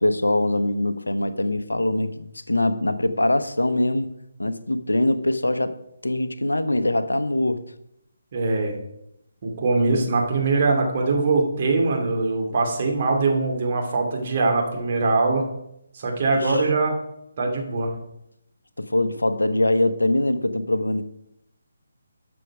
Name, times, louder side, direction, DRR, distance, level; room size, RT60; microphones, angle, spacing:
voice 1, 0.0-4.1 4.4-5.8 6.0-7.6 9.9-10.1 16.3-16.7 18.8-21.0, left 1 dB, 75° left, 11 dB, 0.9 m, -23 dB
voice 2, 8.3-8.7 9.4-15.5 15.9-16.9 17.4-17.9, right 3 dB, 35° right, 0 dB, 2.4 m, -22 dB
12.5 x 6.2 x 5.0 m, 0.81 s
figure-of-eight pair, 145°, 0 cm